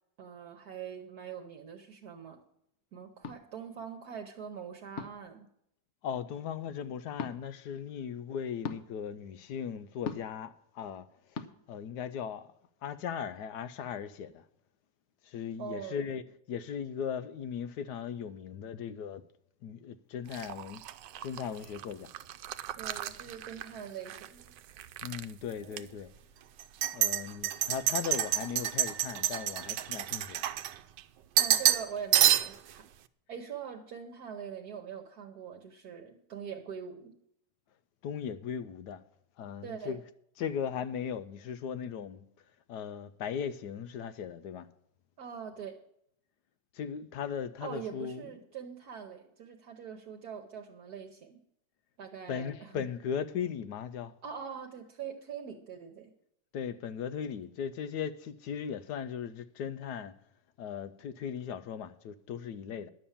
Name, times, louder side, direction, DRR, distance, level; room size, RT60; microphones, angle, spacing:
voice 1, 0.2-2.4 2.9-5.5 15.6-16.0 22.8-24.5 31.4-32.9 33.3-37.1 39.6-40.0 45.2-45.8 47.6-51.4 52.0-52.8 54.2-56.1, right 7 dB, 65° right, 1.4 m, -43 dB
sound 1, 3.2-3.4 5.0-5.3 7.1-7.4 8.6-8.8 10.0-10.4 11.3-11.5, left 5 dB, 55° left, 0.9 m, -38 dB
voice 2, 6.0-11.1 11.7-12.5 12.8-14.4 15.2-16.2 16.5-19.2 19.6-20.8 21.2-22.1 25.0-26.1 26.9-30.4 38.0-39.0 39.4-40.0 40.4-42.2 42.7-44.7 46.7-48.2 52.3-54.1 56.5-60.1 60.6-62.9, left 7 dB, 75° left, 1.2 m, -38 dB
sound 2, 20.3-24.3 24.6-25.2 25.7-25.8 26.6-31.0 31.4-31.9 32.1-32.7, right 12 dB, 80° right, 1.2 m, -29 dB
11.5 x 6.9 x 7.2 m
omnidirectional pair, 1.9 m